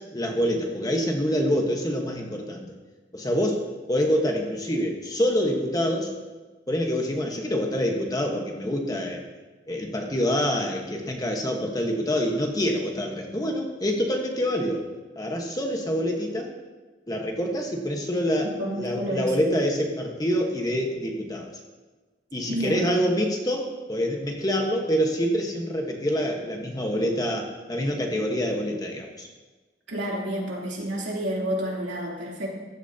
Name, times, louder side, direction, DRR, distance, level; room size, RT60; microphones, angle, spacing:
voice 1, 0.0-2.8 3.1-3.6 3.9-6.1 6.7-9.2 9.7-14.8 15.1-16.5 17.1-21.5 22.3-29.3, equal, 20° left, 1 dB, 1.2 m, -26 dB
voice 2, 18.4-19.3 22.5-22.8 29.9-32.5, right 1 dB, 70° right, -4 dB, 3.1 m, -30 dB
15.5 x 12.0 x 2.8 m, 1.3 s
head